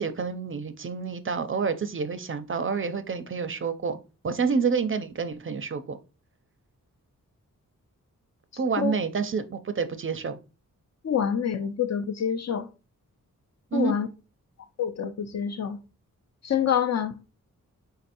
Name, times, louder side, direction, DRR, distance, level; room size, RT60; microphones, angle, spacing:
voice 1, 0.0-4.0 4.2-6.0 8.6-10.4 13.7-13.9, right 5 dB, 40° right, 0.4 m, -28 dB
voice 2, 11.0-12.7 13.7-14.1 14.8-15.8 16.4-17.1, left 8 dB, 55° left, 0.5 m, -26 dB
4.1 x 3.8 x 2.5 m
wide cardioid pair, 105°, 33 cm